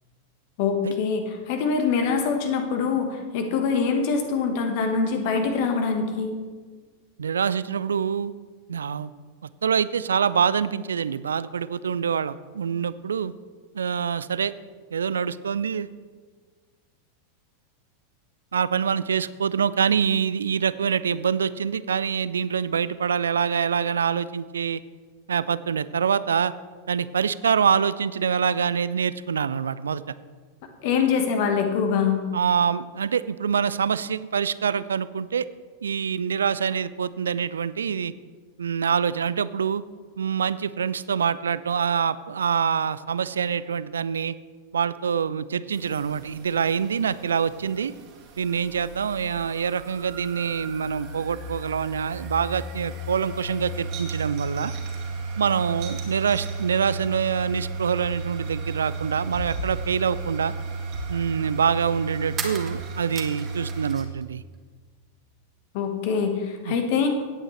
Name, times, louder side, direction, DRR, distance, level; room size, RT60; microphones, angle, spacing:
voice 1, 0.6-6.3 30.8-32.2 65.7-67.1, left 5 dB, 50° left, 5 dB, 1.3 m, -24 dB
voice 2, 7.2-8.3 8.7-9.1 9.6-13.3 13.7-14.5 14.9-15.9 18.5-24.8 25.3-26.5 26.9-30.0 30.9-31.1 32.3-35.5 35.8-38.1 38.6-39.8 40.2-44.3 44.7-47.9 48.4-54.7 55.4-60.5 61.1-64.4 66.7-66.8, right 7 dB, 70° right, 17 dB, 0.3 m, -25 dB
sound 1, 45.7-63.9, right 3 dB, 40° right, 2.1 m, -34 dB
sound 2, 62.3-64.2 64.5-65.4, right 6 dB, 25° right, 1.4 m, -37 dB
16.5 x 8.6 x 3.2 m, 1.5 s
figure-of-eight pair, 90°, 0 cm